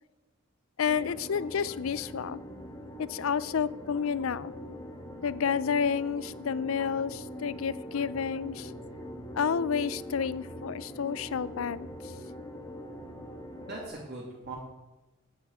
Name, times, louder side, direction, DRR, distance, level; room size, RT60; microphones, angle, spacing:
voice 1, 0.8-2.4 3.0-4.5 5.2-8.7 9.3-12.1, left 6 dB, 85° left, 18 dB, 0.5 m, -30 dB
sound 1, 0.8-13.9, equal, 15° left, 1.6 m, -42 dB
voice 2, 13.6-14.5, right 2 dB, 50° right, -4 dB, 2.5 m, -41 dB
8.7 x 8.4 x 8.2 m, 1.1 s
head